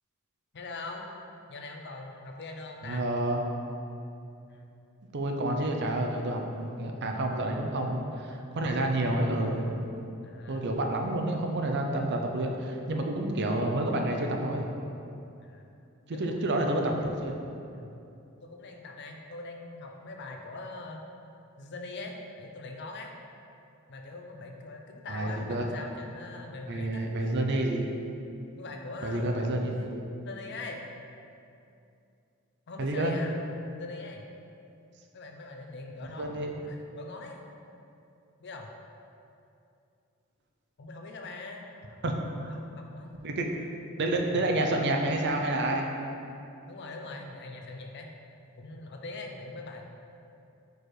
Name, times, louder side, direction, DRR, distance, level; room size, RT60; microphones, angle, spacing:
voice 1, 0.5-1.1 1.5-3.0 4.5-4.8 10.2-10.7 15.4-15.7 16.1-17.0 17.7-17.9 18.4-21.1 21.6-23.1 23.9-27.4 28.5-29.7 30.3-30.9 32.7-33.4 33.7-34.3 35.1-37.5 38.4-38.7 40.8-41.6 42.4-43.1 44.1-44.8 46.7-48.1 48.6-49.8, left 3 dB, 50° left, 2 dB, 0.6 m, -42 dB
voice 2, 2.8-3.4 5.1-10.1 10.5-14.7 16.1-17.4 25.1-25.7 26.7-27.9 29.0-30.0 32.8-33.1 36.2-36.5 42.0-42.1 42.4-42.6 43.2-43.5 44.0-45.9, right 1 dB, 50° right, 2 dB, 0.6 m, -29 dB
4.7 x 4.5 x 4.8 m, 2.6 s
head